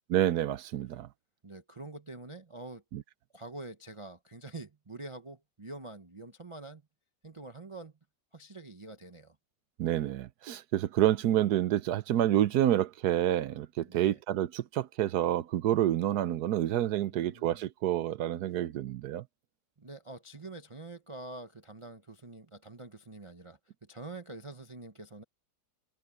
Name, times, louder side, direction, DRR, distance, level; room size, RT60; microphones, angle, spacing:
voice 1, 0.1-1.1 2.9-3.0 9.8-19.2, right 12 dB, 70° right, 1.2 m, -28 dB
voice 2, 1.4-2.8 3.3-6.8 7.2-7.9 8.3-9.4 13.9-14.2 17.1-17.6 19.8-25.2, right 2 dB, 25° right, 0.7 m, -46 dB
omnidirectional pair, 1.9 m